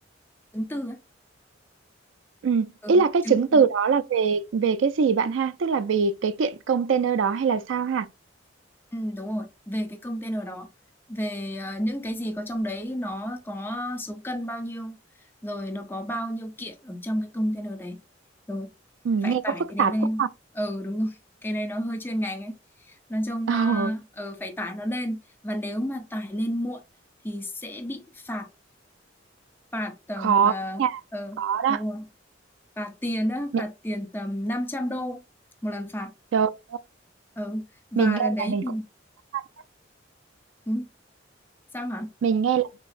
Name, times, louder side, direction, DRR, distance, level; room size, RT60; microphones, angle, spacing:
voice 1, 0.5-1.0 2.8-3.6 8.9-10.7 11.1-15.0 15.4-18.0 18.5-18.7 19.2-20.2 20.5-22.5 22.8-26.8 27.2-28.5 29.7-30.8 31.1-31.4 31.7-32.1 32.8-35.2 35.6-36.1 37.4-37.6 37.9-38.8 40.7-40.9 41.7-42.1, equal, 10° left, 0.6 m, -31 dB
voice 2, 2.4-8.1 19.1-19.9 20.2-20.3 23.5-23.9 30.2-30.5 30.8-31.0 31.4-31.8 33.5-33.6 36.3-36.8 38.0-38.6 39.3-39.4 42.2-42.7, right 6 dB, 85° right, 0.4 m, -23 dB
6.0 x 2.0 x 2.5 m
head